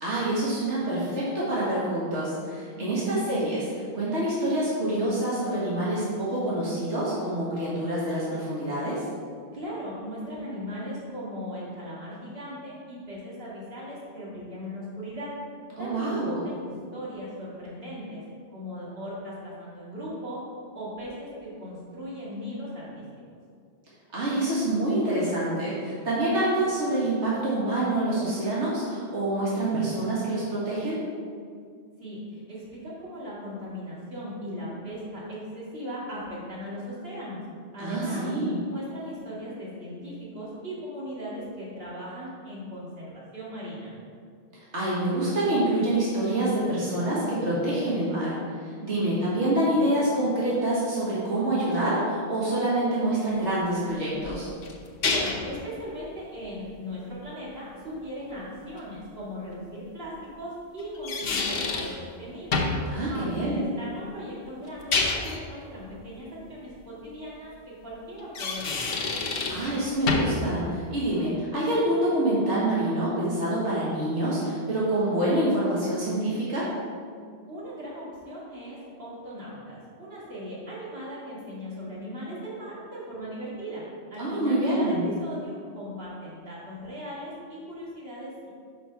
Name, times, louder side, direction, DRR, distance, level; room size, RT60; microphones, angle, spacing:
voice 1, 0.0-3.7 3.9-9.0 15.8-16.4 24.1-31.0 37.8-38.6 44.7-48.4 48.6-54.5 62.9-63.7 69.5-76.7 84.2-85.1, right 1 dB, 85° right, -8 dB, 1.9 m, -26 dB
voice 2, 2.7-3.1 9.5-15.3 15.8-16.2 16.4-18.2 18.5-20.4 20.7-23.0 32.0-37.4 37.7-38.3 38.6-43.9 48.8-49.2 55.1-62.6 63.1-69.0 77.5-88.5, equal, 60° right, -7 dB, 2.3 m, -38 dB
sound 1, 54.2-55.5 58.8-58.9 60.8-62.0 62.5-62.9 64.7-65.4 68.2-69.7 70.1-70.4, left 4 dB, 60° left, 1.0 m, -27 dB
5.9 x 5.5 x 5.6 m, 2.2 s
omnidirectional pair, 1.1 m